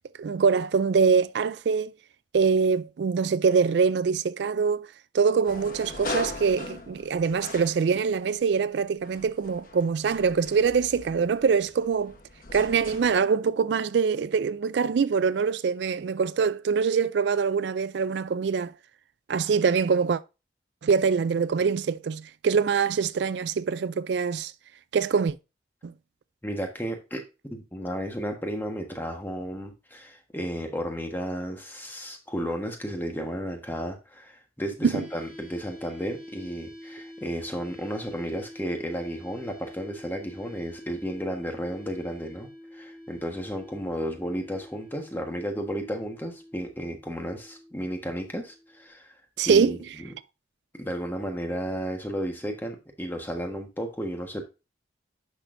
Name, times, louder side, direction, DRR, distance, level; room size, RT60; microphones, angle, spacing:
voice 1, 0.2-1.9 2.3-4.9 5.1-12.1 12.5-18.7 19.3-20.2 20.8-24.5 24.9-25.4 25.8-25.9 34.8-34.9 49.4-49.8, right 5 dB, 70° right, 0.4 m, -24 dB
sound 1, 5.4-8.4 9.0-13.2, left 3 dB, 50° left, 1.1 m, -40 dB
voice 2, 26.4-49.1 49.4-50.1 50.8-54.4, equal, 10° left, 1.3 m, -33 dB
sound 2, 34.9-48.9, equal, 5° right, 2.1 m, -47 dB
10.0 x 6.2 x 2.6 m
head